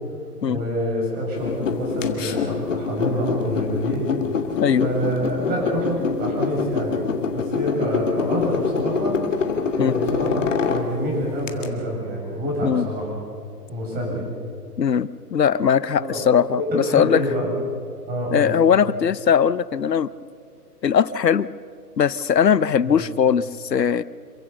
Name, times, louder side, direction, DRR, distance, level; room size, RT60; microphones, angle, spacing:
voice 1, 0.5-4.0 4.8-9.1 9.8-13.2 13.7-14.3 16.0-16.2 16.5-17.5 18.1-18.6 22.8-23.0, equal, 20° right, -2 dB, 7.2 m, -27 dB
sound 1, 1.4-11.7, left 5 dB, 50° left, 2.0 m, -25 dB
voice 2, 14.8-17.2 18.3-20.1 20.8-21.5 22.0-24.0, left 7 dB, 90° left, 19 dB, 0.7 m, -20 dB
27.0 x 15.5 x 7.0 m, 2.3 s
figure-of-eight pair, 135°, 48 cm